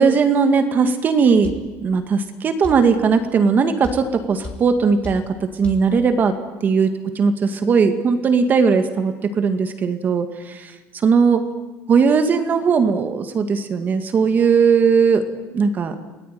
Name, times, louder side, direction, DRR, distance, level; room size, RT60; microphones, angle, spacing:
voice 1, 0.0-1.5 1.8-6.3 6.6-10.7 11.0-11.4 11.9-15.2 15.5-15.9, right 5 dB, 30° right, 8 dB, 2.0 m, -18 dB
sound 1, 1.4-1.7 2.6-2.9 3.8-4.1 4.4-4.7 5.0-5.3 5.6-5.9, left 4 dB, 20° left, 3.1 m, -32 dB
29.0 x 19.0 x 9.3 m, 1.2 s
cardioid pair, 160°, 6 cm